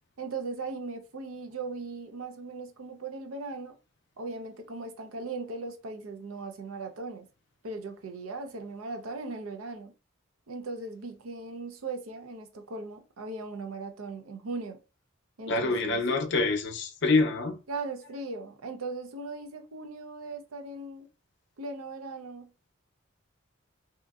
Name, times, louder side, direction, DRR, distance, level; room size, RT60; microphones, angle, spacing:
voice 1, 0.2-3.7 4.2-7.3 7.6-9.9 10.5-14.8 15.4-16.0 17.7-21.1 21.6-22.5, right 3 dB, 90° right, 0.6 m, -38 dB
voice 2, 15.5-17.6, left 3 dB, 55° left, 0.5 m, -26 dB
2.8 x 2.5 x 2.3 m
head